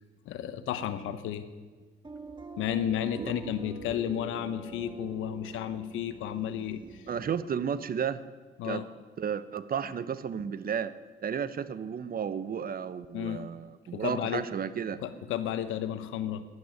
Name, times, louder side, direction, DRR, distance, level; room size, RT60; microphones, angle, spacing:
voice 1, 0.2-1.5 2.6-7.0 8.6-8.9 13.1-13.4 13.9-14.4 15.0-16.5, left 10 dB, 90° left, 11 dB, 1.1 m, -32 dB
sound 1, 2.0-7.4, right 3 dB, 25° right, 1.8 m, -44 dB
voice 2, 7.1-8.2 8.6-8.8 9.2-10.9 11.2-15.0, right 7 dB, 45° right, 14 dB, 0.9 m, -33 dB
12.5 x 11.0 x 9.5 m, 1.4 s
cardioid pair, 90°, 20 cm